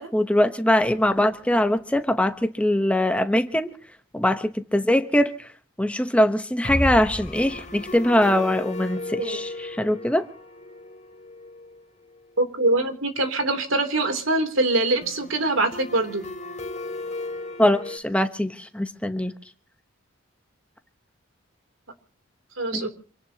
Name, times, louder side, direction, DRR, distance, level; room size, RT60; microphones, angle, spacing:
voice 1, 0.0-3.7 4.1-5.3 5.8-10.3 17.6-19.3 22.7-22.9, left 1 dB, 5° left, 0.9 m, -22 dB
sound 1, 0.8-2.0 2.3-2.4 2.7-2.8 6.6-12.3 15.0-18.0, left 1 dB, 35° left, 2.9 m, -35 dB
voice 2, 12.4-16.3 22.6-22.9, right 2 dB, 85° right, 3.1 m, -23 dB
27.0 x 17.5 x 2.9 m
head